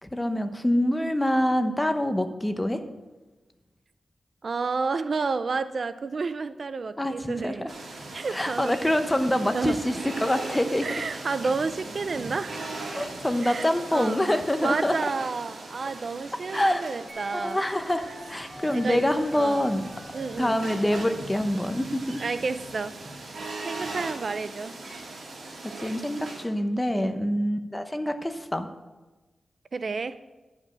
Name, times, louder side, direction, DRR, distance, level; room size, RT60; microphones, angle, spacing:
voice 1, 0.0-2.8 7.0-7.7 8.3-10.9 12.9-15.0 16.5-16.8 17.3-19.8 20.4-22.2 25.8-28.7, left 1 dB, 15° left, 8 dB, 0.9 m, -26 dB
voice 2, 4.4-7.6 8.1-8.8 9.5-9.8 10.8-12.6 13.4-14.2 14.6-17.6 18.7-19.0 19.3-19.7 20.1-20.6 22.2-23.0 23.6-24.8 26.9-27.3 29.7-30.2, right 4 dB, 60° right, 13 dB, 0.4 m, -30 dB
sound 1, 7.7-26.4, right 2 dB, 75° right, 2.3 m, -39 dB
sound 2, 17.1-21.2, equal, 30° right, 2.3 m, -46 dB
11.5 x 5.3 x 7.3 m, 1.2 s
wide cardioid pair, 80°, 0 cm